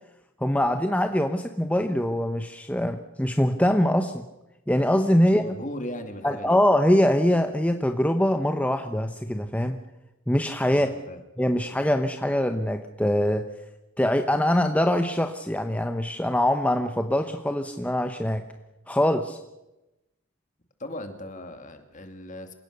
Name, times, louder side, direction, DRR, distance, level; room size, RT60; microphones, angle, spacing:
voice 1, 0.4-4.2 4.7-5.4 6.2-9.8 10.3-10.9 11.4-13.4 14.0-18.4 18.9-19.4, left 1 dB, 5° left, 6 dB, 0.9 m, -23 dB
voice 2, 5.2-6.6 10.7-11.2 20.8-22.5, left 1 dB, 35° left, 7 dB, 2.4 m, -38 dB
27.5 x 17.5 x 6.8 m, 0.97 s
head